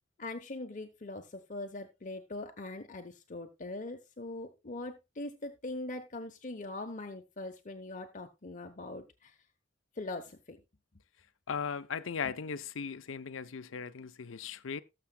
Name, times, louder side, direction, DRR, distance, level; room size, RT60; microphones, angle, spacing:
voice 1, 0.2-9.4 9.9-10.6, left 2 dB, 40° left, 0.8 m, -42 dB
voice 2, 11.5-14.8, left 6 dB, 80° left, 0.6 m, -38 dB
18.5 x 6.8 x 2.2 m
head